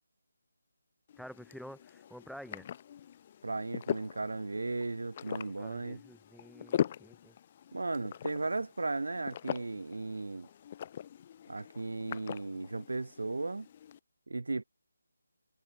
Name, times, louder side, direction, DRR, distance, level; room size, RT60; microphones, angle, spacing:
sound 1, 1.1-14.0, left 9 dB, 20° left, 1.6 m, -41 dB
voice 1, 1.2-2.7 5.3-7.3, equal, ahead, 2.5 m, -49 dB
voice 2, 3.4-6.0 7.7-10.5 11.5-13.7 14.3-14.6, right 3 dB, 80° right, 4.6 m, -36 dB
figure-of-eight pair, 175°, 0 cm